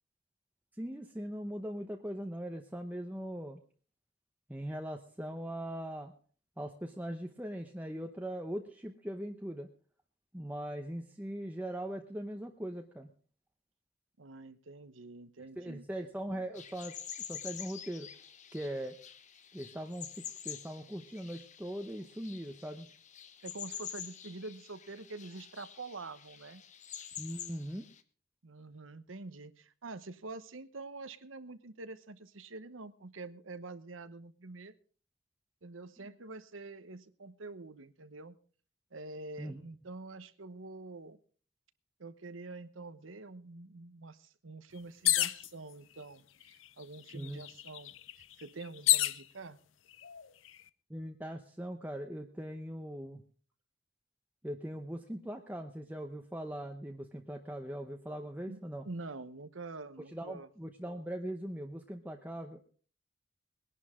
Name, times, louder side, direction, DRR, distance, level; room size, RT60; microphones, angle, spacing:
voice 1, 0.8-3.6 4.5-6.1 6.6-9.7 10.3-13.1 15.6-16.9 17.3-18.1 18.5-19.0 19.5-22.9 27.2-27.8 39.4-39.6 47.1-47.4 50.9-53.2 54.4-58.8 60.1-62.6, right 1 dB, 10° right, 4 dB, 0.8 m, -40 dB
voice 2, 14.2-15.9 23.4-26.6 28.4-34.7 35.6-38.3 38.9-41.2 42.0-49.6 58.4-60.5, right 3 dB, 85° right, 12 dB, 1.0 m, -46 dB
sound 1, 16.5-28.0, left 9 dB, 40° left, 1.0 m, -47 dB
sound 2, 45.0-45.5 46.4-46.5 46.8-49.2 50.0-50.5, left 15 dB, 80° left, 0.6 m, -29 dB
20.5 x 11.0 x 3.7 m, 0.42 s
head